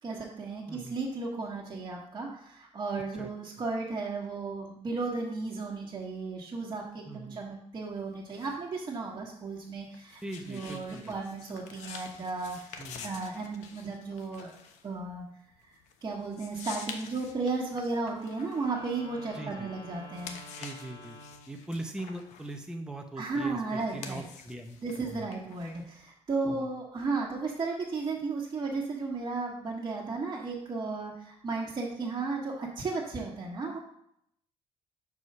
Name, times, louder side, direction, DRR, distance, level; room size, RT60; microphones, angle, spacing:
voice 1, 0.0-14.5 14.8-15.2 15.6-20.4 23.2-24.2 24.8-33.8, right 3 dB, 35° right, -4 dB, 1.5 m, -34 dB
voice 2, 7.1-7.4 10.2-11.2 12.8-13.1 19.3-19.7 20.6-21.2 21.5-25.3 26.5-26.7, right 1 dB, 5° right, 3 dB, 0.8 m, -41 dB
sound 1, 7.8-19.6 20.0-26.1, left 6 dB, 90° left, 0.8 m, -48 dB
Wind instrument woodwind instrument, 18.0-21.6, left 1 dB, 50° left, 1.5 m, -49 dB
5.4 x 4.8 x 5.4 m, 0.72 s
cardioid pair, 110°, 12 cm